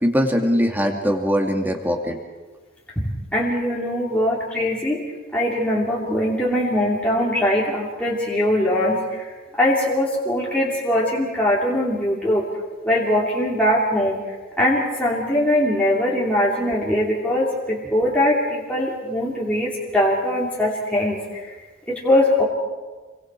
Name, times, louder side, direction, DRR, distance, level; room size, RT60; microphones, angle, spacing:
voice 1, 0.0-2.2 16.7-16.8, equal, 10° right, 2 dB, 2.3 m, -22 dB
voice 2, 3.0-5.0 5.3-9.3 9.6-12.4 12.8-14.2 14.6-21.5 21.9-22.4, left 1 dB, 5° left, -6 dB, 2.8 m, -21 dB
29.5 x 23.5 x 4.6 m, 1.3 s
head